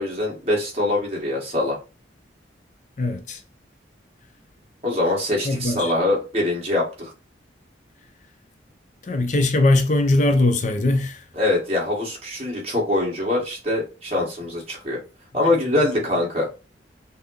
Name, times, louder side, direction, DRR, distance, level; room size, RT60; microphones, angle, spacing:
voice 1, 0.0-1.8 4.8-7.1 11.4-15.0 15.3-16.5, left 2 dB, 35° right, 1.7 m, -23 dB
voice 2, 3.0-3.4 5.4-6.0 9.0-11.2, left 2 dB, 40° left, 0.5 m, -20 dB
5.6 x 2.1 x 3.9 m
head